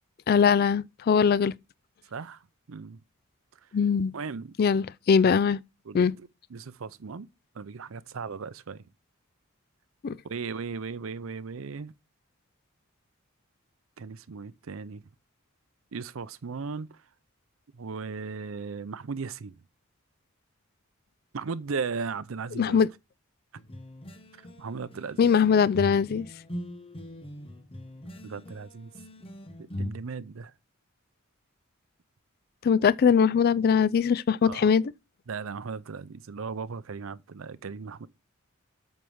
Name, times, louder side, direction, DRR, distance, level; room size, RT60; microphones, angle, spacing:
voice 1, 0.3-1.5 3.7-4.1 4.6-5.6 5.9-6.1 10.0-10.2 22.6-22.9 25.2-26.3 32.6-34.8, left 6 dB, 45° left, 0.3 m, -21 dB
voice 2, 2.0-3.0 4.1-4.5 5.2-5.5 5.8-7.3 7.5-8.9 10.2-11.9 14.0-15.0 15.9-17.0 17.7-19.6 21.3-22.8 24.6-25.2 28.2-28.9 29.6-30.5 34.4-34.7 35.3-38.1, right 5 dB, 70° right, 0.6 m, -37 dB
sound 1, 23.6-29.9, left 1 dB, 25° left, 1.0 m, -39 dB
8.3 x 4.5 x 5.4 m
head